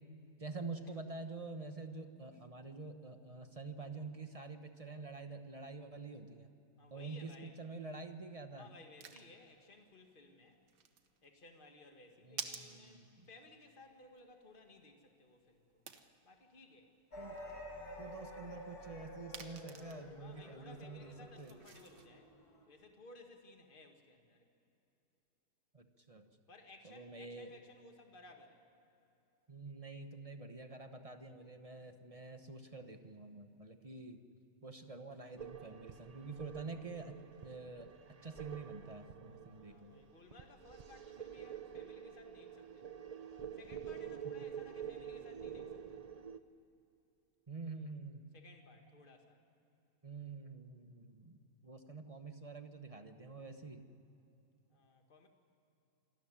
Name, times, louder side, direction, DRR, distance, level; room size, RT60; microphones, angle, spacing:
voice 1, 0.4-6.5 6.9-8.7 12.2-13.3 17.2-17.4 18.0-21.5 25.7-26.3 26.8-27.5 29.5-34.2 34.6-37.1 37.4-37.9 38.2-39.9 44.2-44.3 47.5-48.3 50.0-53.8, right 3 dB, 25° right, 7 dB, 0.9 m, -47 dB
voice 2, 6.8-7.6 8.5-10.6 11.2-15.9 16.2-16.9 20.2-22.3 22.7-24.5 26.5-28.6 39.5-43.0 43.5-46.1 48.3-49.4 54.7-55.3, left 2 dB, 30° left, 4 dB, 2.0 m, -59 dB
sound 1, 8.6-22.1, right 7 dB, 85° right, 1.8 m, -54 dB
sound 2, 17.1-22.6, left 1 dB, 65° left, 3.3 m, -51 dB
sound 3, 35.4-46.4, right 8 dB, 65° right, 0.3 m, -48 dB
27.0 x 13.0 x 10.0 m, 2.9 s
omnidirectional pair, 1.8 m